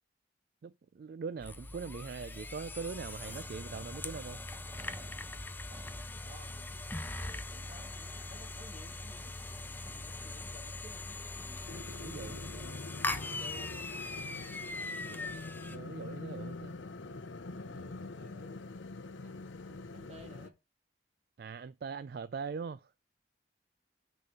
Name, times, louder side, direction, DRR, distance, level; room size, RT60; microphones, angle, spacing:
voice 1, 0.6-4.4 12.0-12.4 15.7-16.7 21.4-22.9, right 5 dB, 55° right, 0.3 m, -41 dB
sound 1, 1.4-15.8, left 2 dB, 10° left, 0.5 m, -41 dB
sound 2, 3.2-11.8, right 1 dB, 5° right, 1.0 m, -55 dB
voice 2, 5.6-6.7 7.2-9.4 9.9-11.7 12.1-13.9 14.7-15.4 17.7-18.7 19.2-19.3 19.6-20.5, equal, 35° right, 1.5 m, -56 dB
sound 3, 11.7-20.5, left 3 dB, 90° left, 0.7 m, -44 dB
6.7 x 4.2 x 6.4 m
head